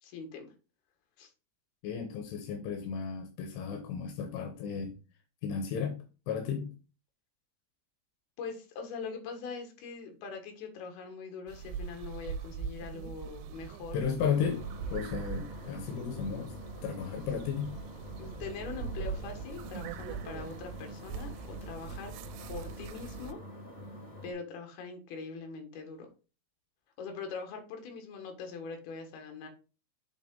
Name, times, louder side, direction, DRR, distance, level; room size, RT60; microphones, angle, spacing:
voice 1, 0.0-0.5 1.2-1.3 8.4-14.0 18.2-22.1 22.5-23.4 24.2-26.1 27.0-29.5, left 5 dB, 70° left, 3.4 m, -42 dB
voice 2, 1.8-5.0 5.4-6.7 13.9-14.7 14.9-16.5 16.8-17.8, left 7 dB, 85° left, 3.1 m, -34 dB
sound 1, 11.5-23.3, right 6 dB, 85° right, 2.7 m, -42 dB
sound 2, 14.2-24.3, left 1 dB, 25° left, 1.5 m, -47 dB
8.3 x 3.8 x 3.7 m
omnidirectional pair, 4.9 m